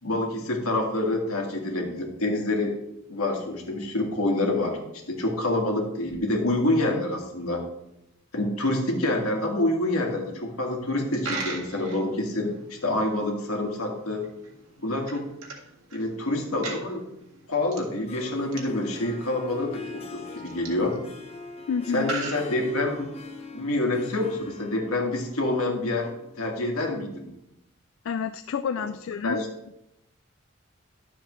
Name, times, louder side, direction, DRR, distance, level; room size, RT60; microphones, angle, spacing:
voice 1, 0.0-2.8 3.1-4.8 5.1-7.6 8.3-14.3 14.8-15.3 15.9-17.0 17.5-21.0 21.9-23.1 23.5-26.1 26.4-27.3 29.2-29.5, left 2 dB, 85° left, 1 dB, 1.9 m, -27 dB
Coin (dropping), 10.9-23.2, right 3 dB, 80° right, 1.9 m, -41 dB
Harp, 17.9-26.8, left 4 dB, 30° left, 1.1 m, -43 dB
voice 2, 21.7-22.1 28.0-29.4, left 6 dB, 70° left, 10 dB, 0.3 m, -29 dB
11.5 x 7.1 x 3.2 m, 0.85 s
head